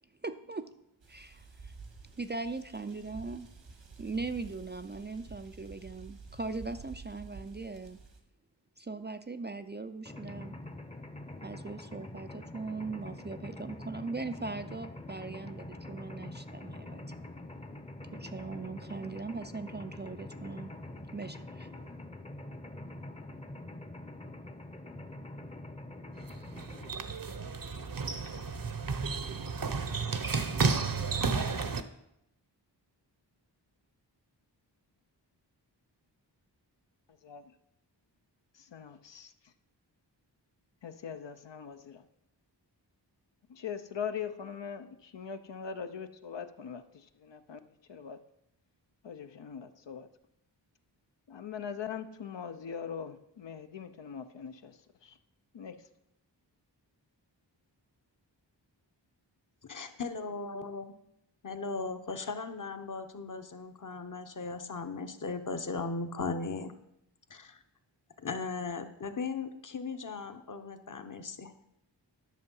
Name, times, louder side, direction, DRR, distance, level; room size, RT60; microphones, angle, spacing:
voice 1, 0.2-0.7 1.1-1.7 2.2-3.5 4.0-8.0 8.8-10.5 11.4-17.2 18.1-20.9 21.1-21.7, right 3 dB, 25° right, 9 dB, 0.4 m, -40 dB
sound 1, 1.0-8.2, right 4 dB, 80° right, 1.7 m, -50 dB
Mechanisms, 10.1-26.9, left 1 dB, 15° left, 0.7 m, -45 dB
sound 2, 26.2-31.8, right 4 dB, 50° right, 0.8 m, -32 dB
voice 2, 37.2-37.5 38.5-39.5 40.8-42.0 43.5-47.6 47.9-48.2 49.0-50.1 51.3-55.2 55.5-55.9, left 7 dB, 75° left, 8 dB, 0.8 m, -41 dB
voice 3, 59.6-60.9 61.4-66.7 67.3-67.6 68.2-71.5, left 4 dB, 45° left, 8 dB, 0.9 m, -37 dB
10.5 x 6.5 x 5.5 m, 0.80 s
wide cardioid pair, 60°, 44 cm